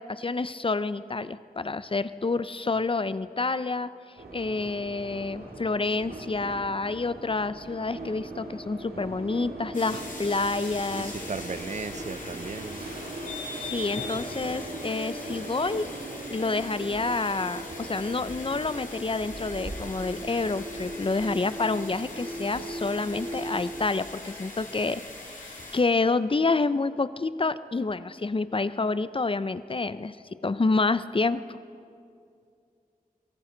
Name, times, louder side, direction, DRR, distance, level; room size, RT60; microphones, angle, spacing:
voice 1, 0.0-3.9 4.3-11.2 13.5-15.9 16.3-25.0 25.4-30.2 30.4-31.6, left 3 dB, 35° left, 14 dB, 0.6 m, -28 dB
sound 1, 4.2-23.9, right 1 dB, 80° right, 2.0 m, -39 dB
sound 2, 9.7-25.8, left 2 dB, 55° left, 2.4 m, -41 dB
voice 2, 11.0-12.9, right 4 dB, 50° right, 13 dB, 0.5 m, -36 dB
24.0 x 14.5 x 3.9 m, 2.4 s
cardioid pair, 40°, 16 cm